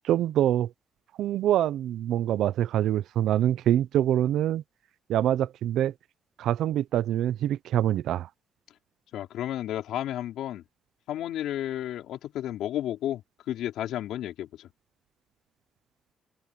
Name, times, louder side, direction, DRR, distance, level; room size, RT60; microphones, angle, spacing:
voice 1, 0.0-0.7 1.2-4.6 5.1-5.9 6.4-8.3, right 11 dB, 80° right, 0.7 m, -25 dB
voice 2, 9.1-10.6 11.1-14.7, left 12 dB, 80° left, 4.9 m, -32 dB
cardioid pair, 90°, 0 cm